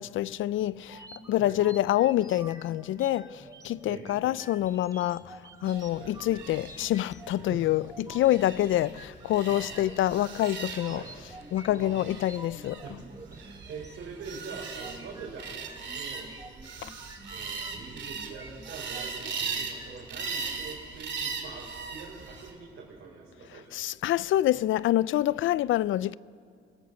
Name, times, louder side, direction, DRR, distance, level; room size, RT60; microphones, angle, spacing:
voice 1, 0.0-11.0 11.5-12.8 16.8-16.9 23.7-26.2, left 13 dB, 80° left, 0.4 m, -27 dB
sound 1, 0.8-20.0, right 2 dB, 20° right, 1.4 m, -49 dB
sound 2, 5.6-22.5, right 5 dB, 65° right, 2.5 m, -39 dB
voice 2, 12.8-15.5 15.9-16.3 17.3-23.8, right 5 dB, 85° right, 4.0 m, -44 dB
24.0 x 17.0 x 6.6 m
cardioid pair, 120°, 20 cm